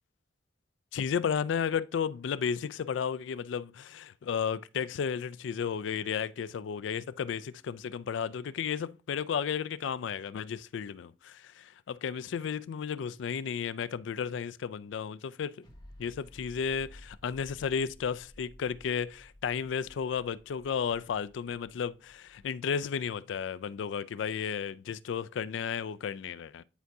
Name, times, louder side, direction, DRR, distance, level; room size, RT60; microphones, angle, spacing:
voice 1, 0.9-15.6 16.0-26.6, left 7 dB, 75° left, 0.3 m, -33 dB
sound 1, 15.6-23.1, left 1 dB, 25° left, 2.1 m, -55 dB
10.0 x 4.6 x 2.7 m
head